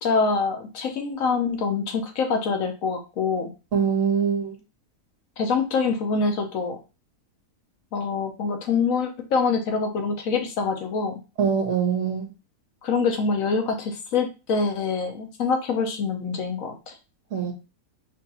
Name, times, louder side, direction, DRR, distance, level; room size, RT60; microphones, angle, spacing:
voice 1, 0.0-3.5 5.4-6.8 7.9-11.1 12.8-16.9, left 4 dB, 65° left, 4 dB, 1.1 m, -25 dB
voice 2, 3.7-4.6 11.4-12.3 17.3-17.5, right 7 dB, 60° right, -1 dB, 1.3 m, -23 dB
4.5 x 2.9 x 2.8 m, 0.30 s
omnidirectional pair, 1.6 m